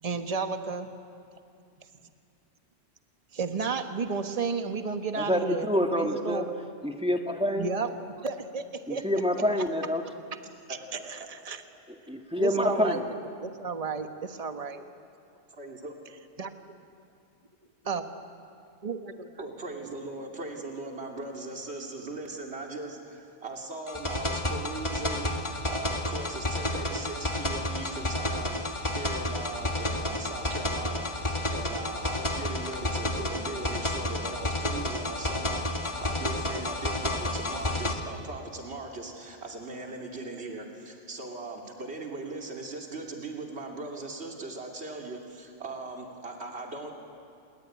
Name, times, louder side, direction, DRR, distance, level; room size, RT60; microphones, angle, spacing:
voice 1, 0.0-0.9 3.3-6.5 7.5-7.9 8.2-9.1 10.3-10.4 10.7-10.8 11.1-11.2 11.4-11.6 12.4-13.0 13.4-14.8 16.4-16.5 17.9-18.0 18.8-19.3, right 5 dB, 30° right, 7 dB, 1.3 m, -32 dB
voice 2, 5.2-6.5 6.8-7.7 8.9-10.0 11.9-13.0, equal, 5° right, 3 dB, 1.9 m, -27 dB
voice 3, 10.7-11.3 15.6-15.9 19.4-46.9, right 2 dB, 60° right, 1 dB, 3.1 m, -39 dB
sound 1, 23.9-37.9, left 1 dB, 25° left, 2.0 m, -31 dB
29.5 x 21.5 x 9.3 m, 2.4 s
omnidirectional pair, 1.2 m